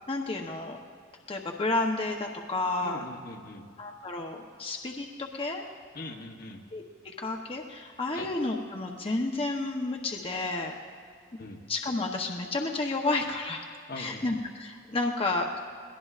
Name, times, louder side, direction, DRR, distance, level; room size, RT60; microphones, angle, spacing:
voice 1, 0.1-0.8 1.3-3.0 3.8-5.6 6.7-10.7 11.7-13.7 14.0-15.6, left 2 dB, 30° left, 1 dB, 0.8 m, -31 dB
voice 2, 2.8-3.7 5.9-6.6 8.1-8.3 11.4-11.6 13.9-14.2, left 2 dB, 55° left, 3 dB, 1.0 m, -41 dB
22.0 x 18.0 x 2.5 m, 2.3 s
head